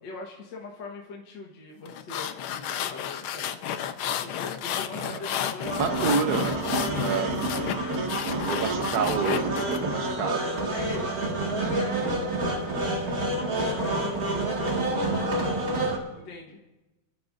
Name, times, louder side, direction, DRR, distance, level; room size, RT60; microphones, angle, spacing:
voice 1, 0.0-3.6 4.2-6.2 10.7-12.8 13.3-15.3 16.1-16.6, left 4 dB, 60° left, -1 dB, 2.0 m, -41 dB
sound 1, 1.9-9.8, left 9 dB, 80° left, 1.6 m, -32 dB
sound 2, 5.6-16.0, right 2 dB, 45° right, 2.4 m, -28 dB
voice 2, 5.7-6.6 7.0-7.4 8.5-10.6, right 6 dB, 65° right, 9 dB, 1.1 m, -29 dB
25.5 x 12.5 x 2.6 m, 1.1 s
omnidirectional pair, 2.3 m